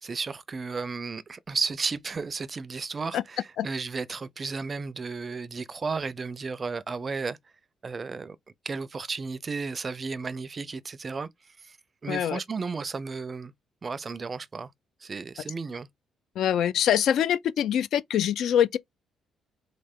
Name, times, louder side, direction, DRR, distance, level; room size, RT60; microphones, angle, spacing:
voice 1, 0.0-7.4 7.8-8.4 8.6-11.8 12.0-13.5 13.8-14.7 15.0-15.9, right 4 dB, 35° right, 0.5 m, -33 dB
voice 2, 12.1-12.4 16.4-18.8, left 10 dB, 75° left, 0.5 m, -24 dB
3.8 x 3.2 x 3.6 m
cardioid pair, 90°, 0 cm